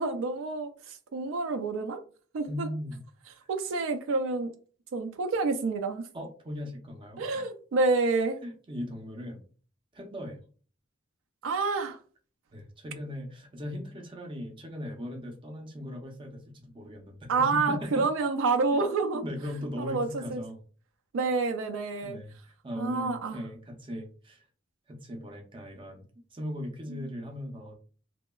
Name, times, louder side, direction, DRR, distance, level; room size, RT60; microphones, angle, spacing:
voice 1, 0.0-2.0 2.3-2.7 3.5-4.5 4.9-6.1 7.2-8.4 11.4-12.0 17.3-19.2 19.8-20.4 21.1-22.2 22.8-23.5 26.9-27.1, right 3 dB, 75° right, 0.4 m, -28 dB
voice 2, 2.4-3.0 3.3-3.5 6.1-7.4 8.4-9.4 9.9-10.4 12.5-18.1 19.0-20.6 21.2-21.3 22.0-24.4 24.9-26.0 26.3-27.7, left 1 dB, 25° right, 0.5 m, -39 dB
2.9 x 2.1 x 2.2 m
head